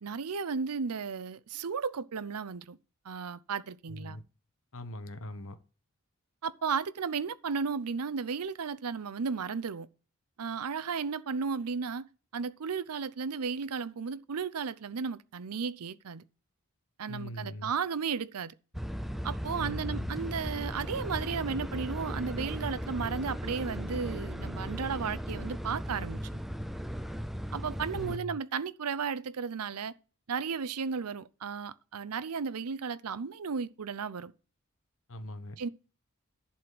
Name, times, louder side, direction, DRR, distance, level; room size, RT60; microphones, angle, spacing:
voice 1, 0.0-2.8 3.0-4.2 6.4-9.9 10.4-12.0 12.3-16.2 17.0-18.5 19.2-26.4 27.5-29.9 30.3-34.3 35.6-35.7, right 5 dB, 85° right, 0.6 m, -34 dB
voice 2, 3.9-4.2 4.7-5.6 17.1-17.7 19.6-20.1 27.9-28.4 35.1-35.6, left 1 dB, 65° left, 1.1 m, -41 dB
sound 1, 18.7-28.2, equal, ahead, 0.5 m, -36 dB
11.0 x 4.3 x 7.6 m
head